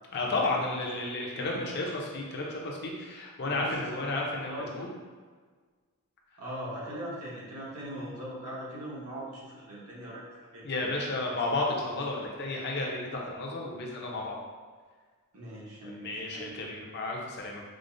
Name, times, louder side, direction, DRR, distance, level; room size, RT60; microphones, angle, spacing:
voice 1, 0.1-4.9 10.6-14.4 15.8-17.6, left 2 dB, 50° left, -1 dB, 0.6 m, -32 dB
voice 2, 1.4-1.9 3.4-4.2 4.5-4.7 6.4-11.2 12.2-12.3 15.3-16.7, right 1 dB, 85° right, -6 dB, 1.0 m, -41 dB
4.9 x 2.0 x 2.5 m, 1.5 s
head